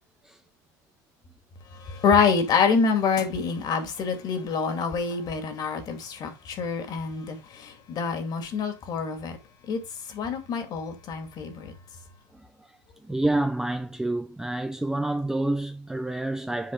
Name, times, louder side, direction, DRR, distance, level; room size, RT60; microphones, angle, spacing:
voice 1, 1.8-9.4 9.7-9.8 10.1-11.7, left 5 dB, 45° left, 2.4 m, -26 dB
voice 2, 12.3-12.7 13.0-16.7, right 2 dB, 5° right, 0.6 m, -28 dB
7.8 x 4.9 x 3.9 m
supercardioid pair, 115°, 10 cm